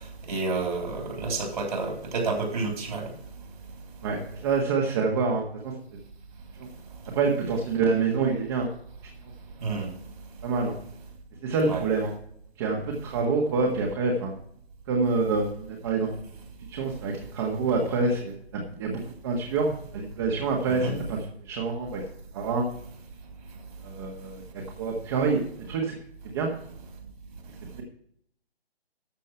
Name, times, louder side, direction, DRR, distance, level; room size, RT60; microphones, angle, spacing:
voice 1, 0.3-3.1 9.6-9.9 11.7-11.8 20.7-20.9, right 3 dB, 50° right, 2 dB, 3.5 m, -29 dB
voice 2, 4.4-5.7 7.1-8.7 10.4-10.7 11.4-12.1 12.6-14.3 14.9-16.1 16.7-21.2 21.5-22.0 22.3-22.6 23.8-24.4 24.8-25.9 26.2-26.5 27.7-27.8, right 4 dB, 25° right, 0 dB, 1.7 m, -26 dB
13.0 x 7.4 x 4.5 m, 0.66 s
figure-of-eight pair, 145°, 31 cm